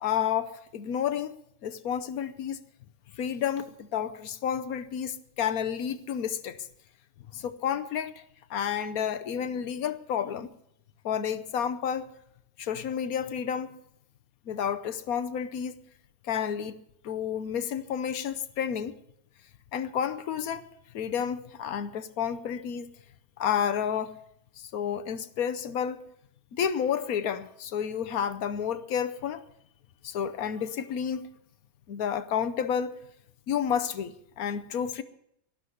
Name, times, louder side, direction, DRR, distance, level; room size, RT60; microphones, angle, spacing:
voice 1, 0.0-1.4 1.6-2.6 3.1-6.6 7.3-8.2 8.5-10.5 11.0-12.1 12.6-13.7 14.5-15.7 16.2-16.8 17.0-18.9 19.7-20.6 20.9-22.9 23.4-24.1 24.6-26.0 26.5-29.4 30.0-31.3 31.9-33.0 33.5-35.0, left 8 dB, 80° left, 1.3 m, -30 dB
12.5 x 11.5 x 7.8 m
omnidirectional pair, 1.5 m